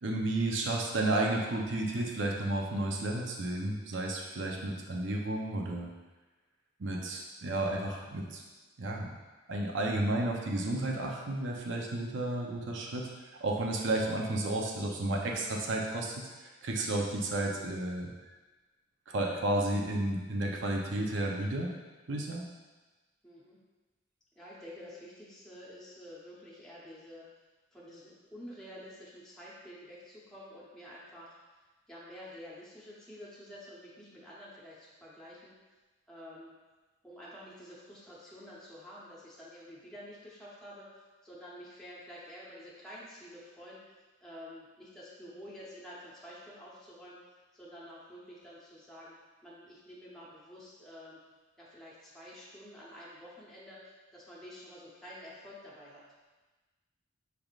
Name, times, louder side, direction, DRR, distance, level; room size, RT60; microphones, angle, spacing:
voice 1, 0.0-5.9 6.8-8.4 8.8-9.1 9.5-13.1 13.4-18.1 19.1-21.7 22.1-22.4, right 1 dB, 60° right, 0 dB, 0.6 m, -32 dB
voice 2, 11.6-11.9 23.2-23.6 24.4-27.3 27.7-31.4 31.9-35.5 36.1-36.5 37.0-43.8 44.2-47.2 47.5-49.1 49.4-51.2 51.6-56.0, equal, 5° left, -8 dB, 0.8 m, -49 dB
6.0 x 3.4 x 2.4 m, 1.2 s
head